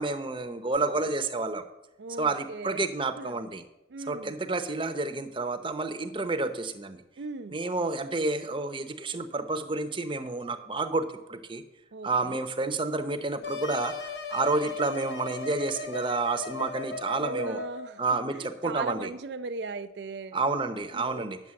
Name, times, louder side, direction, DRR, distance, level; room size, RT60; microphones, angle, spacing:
voice 1, 0.0-1.6 2.2-3.6 4.1-7.0 7.5-11.6 12.0-17.6 18.0-19.1 20.3-21.4, right 3 dB, 25° right, 9 dB, 0.7 m, -30 dB
voice 2, 2.0-2.9 3.2-3.3 3.9-4.4 7.2-7.6 11.9-12.5 17.2-20.4 20.9-21.3, right 3 dB, 65° right, 9 dB, 0.4 m, -38 dB
sound 1, 13.4-17.9, left 4 dB, 65° left, 0.8 m, -37 dB
9.6 x 6.7 x 7.6 m, 0.93 s
head